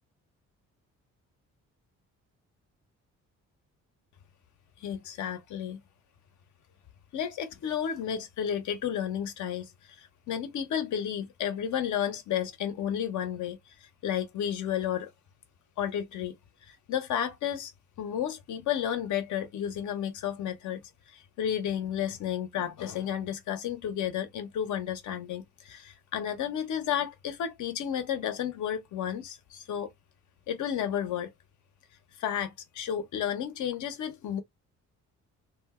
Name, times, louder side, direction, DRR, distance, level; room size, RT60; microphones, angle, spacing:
voice 1, 4.8-5.8 7.1-15.1 15.8-16.4 16.7-17.7 18.0-20.8 21.1-29.9 30.5-31.3 32.2-34.4, left 9 dB, 75° left, 0.9 m, -32 dB
2.5 x 2.2 x 3.5 m
cardioid pair, 90°, 30 cm